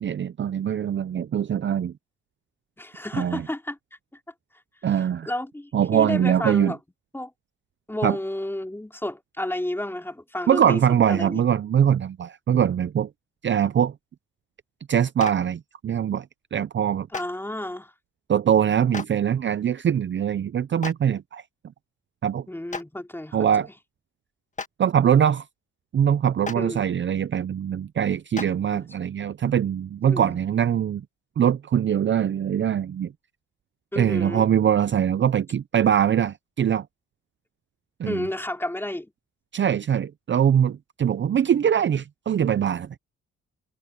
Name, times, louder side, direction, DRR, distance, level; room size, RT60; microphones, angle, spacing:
voice 1, 0.0-1.9 3.1-3.4 4.8-5.3 5.7-6.7 8.0-8.2 10.5-13.1 13.4-13.9 14.9-16.3 16.5-17.1 18.3-21.4 22.2-22.5 23.3-23.7 24.8-25.5 25.9-31.0 31.4-33.1 34.0-36.9 38.0-38.3 39.5-43.0, right 9 dB, 40° right, 0.6 m, -22 dB
voice 2, 2.8-3.8 5.3-6.8 7.1-7.3 7.9-10.8 11.1-11.4 17.1-17.9 22.5-23.4 26.6-26.8 28.7-28.8 30.0-30.4 33.9-34.4 38.0-39.1, left 1 dB, 5° left, 3.8 m, -31 dB
Clapping, 15.2-15.3 17.1-17.2 18.9-19.0 20.8-20.9 22.7-22.8 24.5-24.7 26.4-26.5 28.3-28.4, left 4 dB, 25° left, 1.9 m, -31 dB
cardioid pair, 90°, 30 cm